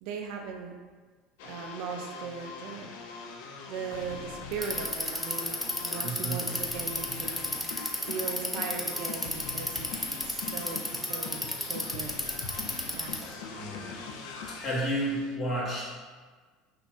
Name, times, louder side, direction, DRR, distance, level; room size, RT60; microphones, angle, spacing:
voice 1, 0.0-0.8 1.4-2.9 3.7-7.8 8.1-10.0 10.3-12.1 12.9-13.2, right 5 dB, 65° right, 3 dB, 0.3 m, -38 dB
sound 1, 1.4-15.3, left 5 dB, 65° left, 0.3 m, -42 dB
Bicycle, 4.5-13.3, left 1 dB, 10° left, 0.5 m, -32 dB
voice 2, 6.0-6.5 13.5-13.9 14.5-16.0, right 1 dB, 45° left, -7 dB, 1.4 m, -32 dB
3.7 x 3.1 x 2.3 m, 1.4 s
hypercardioid pair, 70°, 0 cm